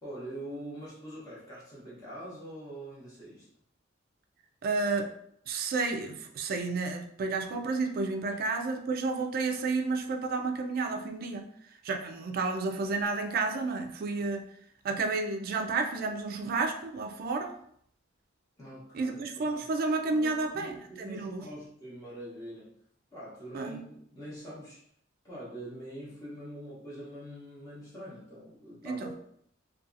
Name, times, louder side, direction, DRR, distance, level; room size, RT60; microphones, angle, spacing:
voice 1, 0.0-3.5 18.6-19.2 20.1-22.8 23.1-24.8 25.2-29.1, right 1 dB, 20° left, -8 dB, 0.8 m, -44 dB
voice 2, 4.6-5.1 5.5-11.5 11.8-14.4 14.8-17.5 18.9-21.4 23.5-23.8 28.8-29.1, right 3 dB, 50° right, 4 dB, 0.3 m, -31 dB
2.7 x 2.3 x 2.4 m, 0.67 s
head